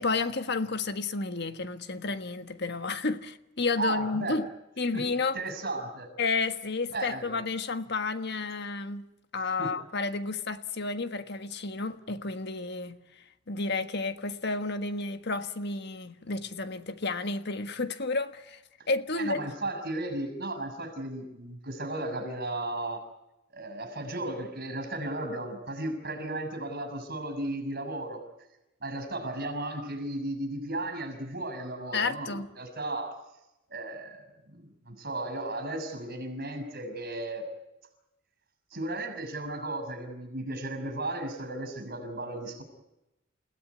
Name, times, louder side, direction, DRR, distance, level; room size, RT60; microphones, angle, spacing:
voice 1, 0.0-4.5 4.8-5.4 6.2-13.0 13.5-18.6 18.9-19.4 31.9-32.5, left 3 dB, 55° left, 1.5 m, -31 dB
voice 2, 3.8-4.4 4.9-5.0 5.3-6.1 6.9-7.4 9.3-9.7 19.2-23.0 23.5-28.2 28.8-33.2 33.7-37.5 38.7-42.6, right 2 dB, 50° right, 6.3 m, -35 dB
30.0 x 17.0 x 9.6 m
head